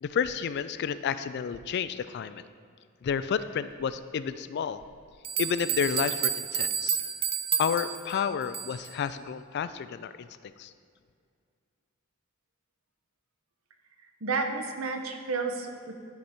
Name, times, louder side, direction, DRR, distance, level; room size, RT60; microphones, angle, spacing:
voice 1, 0.0-2.4 3.0-4.8 5.4-7.0 7.6-10.7, left 7 dB, 50° left, 13 dB, 0.3 m, -31 dB
sound 1, 4.8-4.9 5.2-8.9, right 8 dB, 25° right, 0.4 m, -30 dB
voice 2, 14.2-15.9, right 4 dB, 70° right, 5 dB, 0.8 m, -31 dB
10.5 x 4.8 x 4.3 m, 2.2 s
head